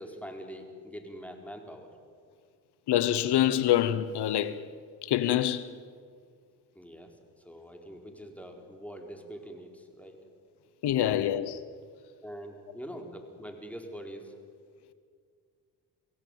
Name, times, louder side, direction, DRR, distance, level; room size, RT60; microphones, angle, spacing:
voice 1, 0.0-2.0 6.7-10.2 11.2-11.3 12.2-14.4, equal, 5° left, 4.4 m, -44 dB
voice 2, 2.9-4.6 5.0-5.7 10.8-11.6, left 12 dB, 80° left, 1.0 m, -26 dB
23.5 x 16.5 x 9.3 m
cardioid pair, 65°, 39 cm